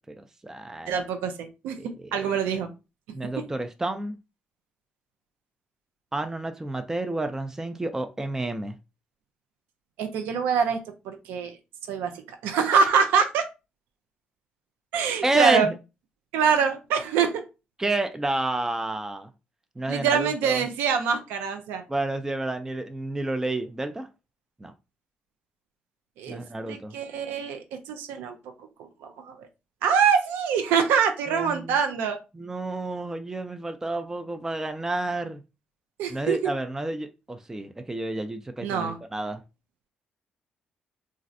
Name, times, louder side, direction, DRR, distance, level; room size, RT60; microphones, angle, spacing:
voice 1, 0.2-1.0 1.8-2.3 3.1-4.2 6.1-8.8 15.2-15.7 17.8-19.3 19.8-20.7 21.9-24.1 24.6-24.7 26.3-27.0 31.3-31.8 32.3-35.4 36.1-39.4, right 2 dB, 15° right, 0.4 m, -30 dB
voice 2, 0.9-1.8 2.1-2.7 10.0-10.8 11.1-11.6 11.9-12.1 12.4-13.5 14.9-15.7 16.3-17.4 19.9-21.8 26.2-26.4 26.7-28.4 29.0-29.4 29.8-32.2 36.0-36.4 38.6-39.0, right 6 dB, 85° right, 0.4 m, -24 dB
3.1 x 2.4 x 2.5 m
supercardioid pair, 70°, 3 cm